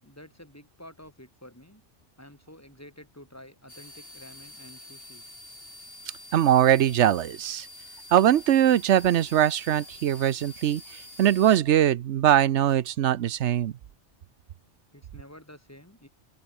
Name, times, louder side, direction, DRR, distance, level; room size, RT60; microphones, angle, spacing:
voice 1, 0.0-1.8 2.2-5.2 14.9-16.1, left 1 dB, 15° left, 5.6 m, -49 dB
sound 1, 3.7-11.6, left 1 dB, 55° left, 7.8 m, -47 dB
voice 2, 6.3-7.7 8.1-10.8 11.2-13.7, right 11 dB, 85° right, 1.0 m, -21 dB
open air
omnidirectional pair, 1.2 m